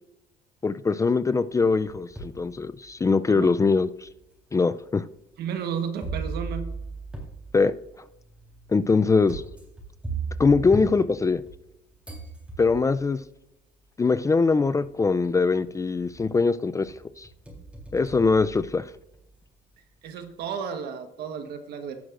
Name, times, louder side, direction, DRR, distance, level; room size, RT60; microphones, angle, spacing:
voice 1, 0.6-4.1 4.5-5.0 7.5-7.7 8.7-9.4 10.4-11.4 12.6-13.2 14.0-17.3 17.9-18.9, left 4 dB, 20° left, 13 dB, 0.3 m, -22 dB
sound 1, 1.5-2.4 3.0-3.1 4.0-4.1 6.0-11.7 12.0-13.1 14.2-14.3 14.8-15.3 15.6-16.4 16.8-19.2, right 3 dB, 5° right, 3.6 m, -37 dB
voice 2, 5.4-6.7 20.0-22.0, right 7 dB, 70° right, 7 dB, 1.3 m, -33 dB
16.5 x 6.3 x 2.5 m, 0.85 s
cardioid pair, 110°, 17 cm